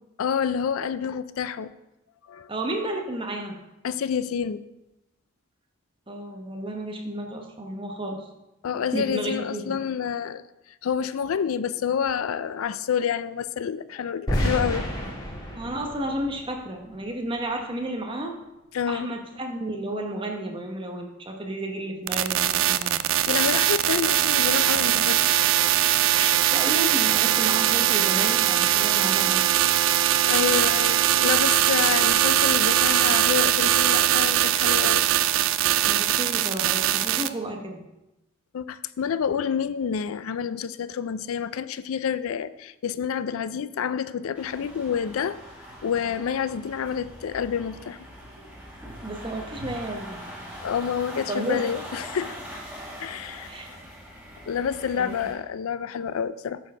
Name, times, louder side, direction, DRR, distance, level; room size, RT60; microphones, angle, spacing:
voice 1, 0.2-1.7 2.3-2.5 3.8-4.6 8.6-10.4 10.8-14.9 18.7-19.1 23.3-25.4 30.2-35.0 38.5-45.4 45.8-48.0 50.6-52.4 53.0-53.5 54.5-56.6, left 7 dB, 80° left, 14 dB, 0.4 m, -28 dB
voice 2, 2.5-3.6 6.1-8.3 8.9-9.8 15.5-18.3 18.9-23.0 26.1-29.6 35.9-37.8 49.0-50.3 51.3-51.6 53.5-53.7 54.9-55.3, right 1 dB, 25° right, 2 dB, 1.0 m, -32 dB
sound 1, 14.3-17.2, equal, 20° left, 1.7 m, -30 dB
sound 2, 22.1-37.3, right 13 dB, 65° right, 0.4 m, -21 dB
sound 3, 44.3-55.3, equal, 5° right, 2.0 m, -42 dB
9.0 x 4.6 x 6.1 m, 0.95 s
head